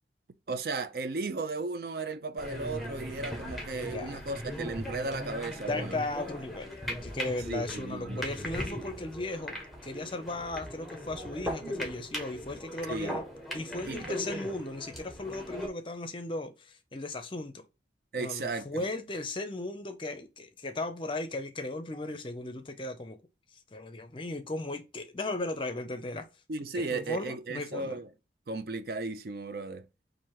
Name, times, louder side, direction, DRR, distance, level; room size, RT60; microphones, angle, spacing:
voice 1, 0.5-6.0 7.5-8.2 12.9-13.2 13.8-14.2 18.1-18.8 26.5-28.1 28.5-29.8, right 3 dB, 55° right, 0.4 m, -35 dB
sound 1, 2.4-15.7, equal, ahead, 0.9 m, -39 dB
voice 2, 3.4-4.2 5.5-13.2 13.5-17.6 18.2-23.2 23.5-26.3 26.8-27.9, left 2 dB, 30° left, 0.6 m, -36 dB
4.4 x 2.6 x 4.6 m
head